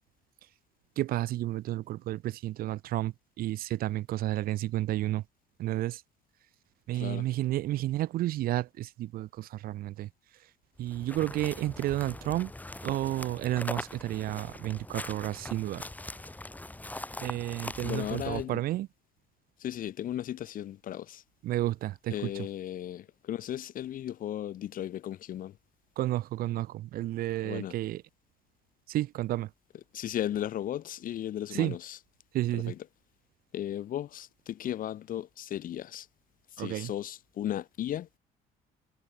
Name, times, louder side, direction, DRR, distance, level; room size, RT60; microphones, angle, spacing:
voice 1, 1.0-5.2 5.6-6.0 6.9-10.1 10.8-12.5 12.8-15.8 17.2-18.9 21.4-22.5 26.0-28.0 28.9-29.5 31.5-31.7 32.3-32.7 36.6-36.9, right 15 dB, 60° right, 0.5 m, -31 dB
voice 2, 6.9-7.3 17.8-18.6 19.6-21.2 22.1-25.6 27.4-27.7 29.9-32.0 32.5-32.8 33.5-36.1 36.6-38.1, left 11 dB, 55° left, 1.0 m, -35 dB
sound 1, 10.7-18.4, left 2 dB, 10° left, 1.8 m, -41 dB
cardioid pair, 110°, 17 cm